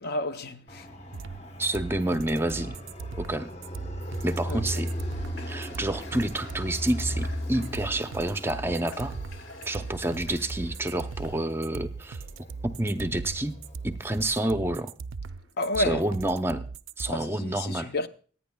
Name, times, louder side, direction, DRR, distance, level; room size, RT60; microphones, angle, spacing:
voice 1, 0.0-0.9 4.5-4.6 15.6-16.0 17.1-18.1, left 1 dB, 55° left, 0.6 m, -30 dB
Fixed-wing aircraft airplane, 0.7-14.2, equal, 35° left, 1.1 m, -38 dB
sound 1, 1.1-17.1, right 4 dB, 80° right, 0.4 m, -39 dB
voice 2, 1.6-2.7 3.2-3.5 4.2-4.9 5.5-9.1 9.7-12.2 12.6-13.6 13.8-14.9 15.8-16.6 17.0-17.9, right 1 dB, 10° right, 0.5 m, -29 dB
Water / Water tap faucet, 4.0-11.6, left 3 dB, 80° left, 1.7 m, -51 dB
26.0 x 9.3 x 2.2 m
head